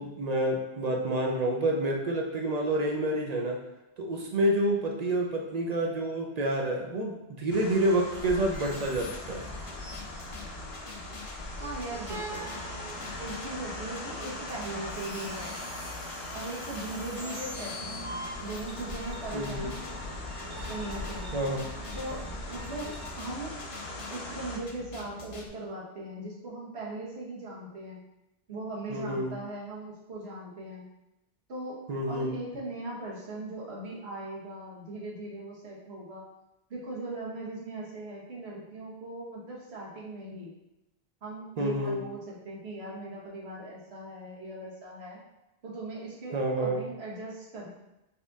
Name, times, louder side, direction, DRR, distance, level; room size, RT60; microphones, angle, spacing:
voice 1, 0.0-3.6 4.0-9.4 19.3-19.7 21.3-21.7 28.9-29.3 31.9-32.3 41.6-42.0 46.3-46.8, right 1 dB, 50° right, 0 dB, 0.5 m, -28 dB
sound 1, 7.5-24.6, left 2 dB, 75° left, 1.0 m, -42 dB
sound 2, 8.1-23.1, equal, 25° right, 1.1 m, -42 dB
sound 3, 8.3-25.5, left 2 dB, 45° left, 0.4 m, -46 dB
voice 2, 11.6-12.4 13.2-15.6 16.3-19.8 20.7-21.4 21.9-23.5 24.1-28.0 28.5-30.9 31.5-31.8 32.1-36.2 36.7-40.5 41.2-45.2 45.6-47.7, right 2 dB, 80° right, -4 dB, 1.3 m, -39 dB
4.2 x 2.5 x 3.4 m, 0.92 s
omnidirectional pair, 1.1 m